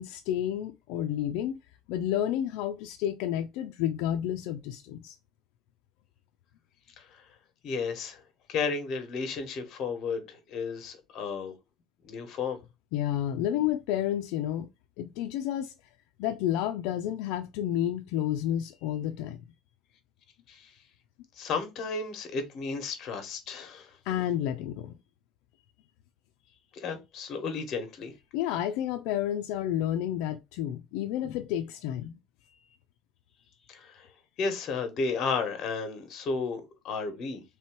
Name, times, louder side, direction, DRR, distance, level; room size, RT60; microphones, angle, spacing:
voice 1, 0.0-1.6 1.9-5.2 12.9-14.7 15.0-15.7 16.2-19.4 24.1-25.0 28.3-32.2 32.5-32.7, left 11 dB, 80° left, 0.4 m, -30 dB
voice 2, 7.6-8.2 8.5-11.5 12.0-12.6 20.5-20.7 21.4-23.9 26.7-28.1 33.7-34.1 34.4-37.4, left 4 dB, 45° left, 1.2 m, -33 dB
3.3 x 3.0 x 4.5 m
cardioid pair, 145°, 0 cm